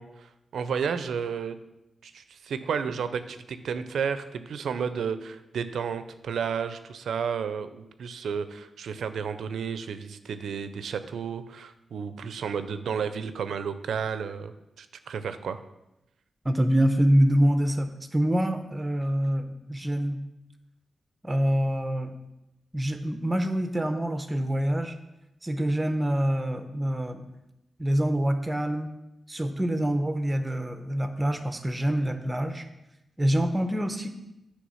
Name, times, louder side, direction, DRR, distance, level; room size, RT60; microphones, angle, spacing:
voice 1, 0.0-1.6 2.0-15.6, right 6 dB, 90° right, 11 dB, 0.4 m, -32 dB
voice 2, 16.4-20.2 21.2-22.1 22.7-24.9 25.4-27.2 27.8-28.9 29.3-32.6 33.2-34.2, equal, 15° right, 8 dB, 0.7 m, -25 dB
9.4 x 3.2 x 5.5 m, 0.92 s
wide cardioid pair, 105°, 0 cm